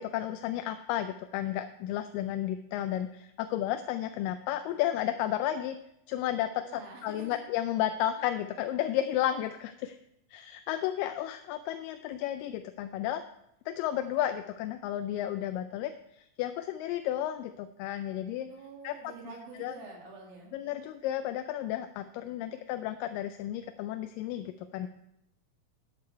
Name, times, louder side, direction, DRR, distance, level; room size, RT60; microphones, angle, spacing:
voice 1, 0.0-5.8 6.1-10.0 10.3-13.2 13.7-18.5 18.8-19.8 20.5-24.9, left 12 dB, 80° left, 9 dB, 2.1 m, -33 dB
voice 2, 6.7-7.3 18.5-20.7 22.2-22.5, right 4 dB, 75° right, -1 dB, 3.9 m, -47 dB
12.0 x 8.7 x 4.6 m, 0.80 s
omnidirectional pair, 4.2 m